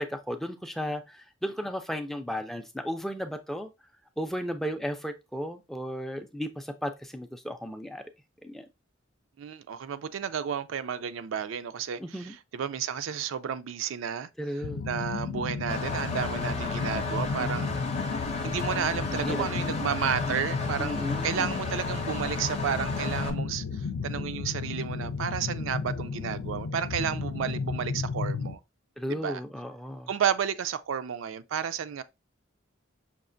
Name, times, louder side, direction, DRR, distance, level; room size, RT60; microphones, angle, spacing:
voice 1, 0.0-3.7 4.2-8.0 8.4-8.7 12.0-12.4 14.4-14.9 19.1-19.8 20.7-21.5 29.0-30.1, equal, ahead, 0.3 m, -34 dB
voice 2, 9.4-14.3 14.8-17.8 18.4-28.6 29.1-29.4 30.1-32.0, right 8 dB, 75° right, 0.4 m, -32 dB
sound 1, 14.6-28.5, left 5 dB, 85° left, 0.4 m, -33 dB
Engine, 15.7-23.3, left 3 dB, 35° left, 0.7 m, -34 dB
5.9 x 2.4 x 2.5 m
head